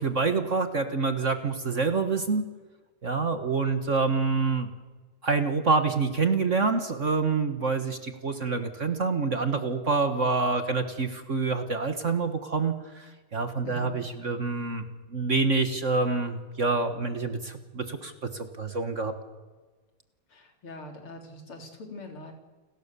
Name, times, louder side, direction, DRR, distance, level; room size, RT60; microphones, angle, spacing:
voice 1, 0.0-2.4 3.0-4.7 5.2-14.8 15.1-19.1, right 4 dB, 40° right, 8 dB, 1.6 m, -27 dB
voice 2, 13.6-14.0 20.3-22.3, left 1 dB, 75° left, 3 dB, 4.3 m, -43 dB
29.5 x 20.0 x 6.9 m, 1.3 s
omnidirectional pair, 2.4 m